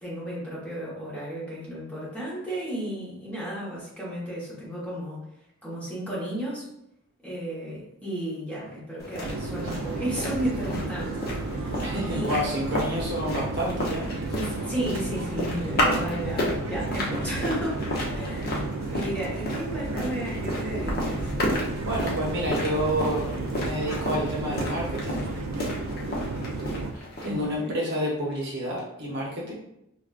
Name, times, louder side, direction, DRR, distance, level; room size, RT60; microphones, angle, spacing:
voice 1, 0.0-5.2 5.6-6.6 7.2-11.2 11.5-11.8 12.1-12.5 14.3-17.8 18.1-18.6 18.9-21.3 27.2-27.7, right 1 dB, 5° left, -8 dB, 1.1 m, -33 dB
sound 1, 9.0-27.6, left 1 dB, 45° left, 0.7 m, -32 dB
sound 2, 9.2-26.9, right 3 dB, 75° right, 0.4 m, -33 dB
voice 2, 11.8-14.1 21.8-23.3 23.6-25.3 26.9-29.5, equal, 50° right, -3 dB, 0.8 m, -29 dB
4.7 x 2.3 x 2.4 m, 0.81 s
head